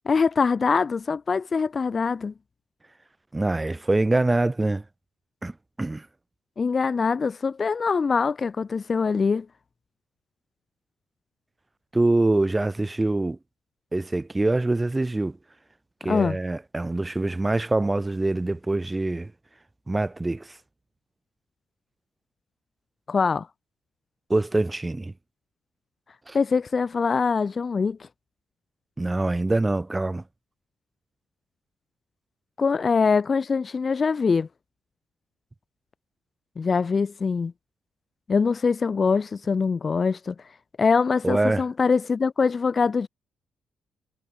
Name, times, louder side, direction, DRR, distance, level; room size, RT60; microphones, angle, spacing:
voice 1, 0.1-2.3 6.6-9.5 16.1-16.4 23.1-23.5 26.3-28.1 32.6-34.5 36.6-37.5 38.3-40.3 40.8-43.1, left 5 dB, 35° left, 0.4 m, -23 dB
voice 2, 3.3-4.8 5.4-6.1 11.9-13.4 13.9-15.4 16.0-19.3 19.9-20.6 24.3-25.1 26.3-26.4 29.0-30.2 41.2-41.6, right 2 dB, 15° right, 1.1 m, -24 dB
cardioid pair, 90°, 0 cm